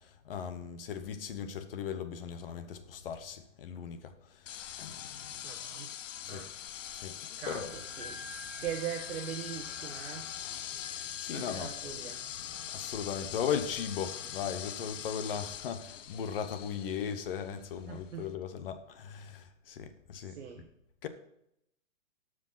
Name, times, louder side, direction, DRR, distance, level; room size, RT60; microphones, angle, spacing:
voice 1, 0.2-4.1 4.8-5.4 6.2-6.4 6.9-7.7 10.8-11.7 12.4-20.4 21.0-21.1, left 7 dB, 45° left, 1.0 m, -38 dB
sound 1, 4.5-18.3, left 10 dB, 65° left, 0.8 m, -43 dB
voice 2, 5.4-5.9 6.3-6.5 7.4-8.2 8.6-10.2 11.3-12.3 17.9-18.2 20.2-20.7, right 9 dB, 60° right, 1.3 m, -41 dB
sound 2, 7.4-15.7, left 1 dB, 10° left, 3.8 m, -52 dB
13.5 x 5.1 x 5.7 m
hypercardioid pair, 170°, 41 cm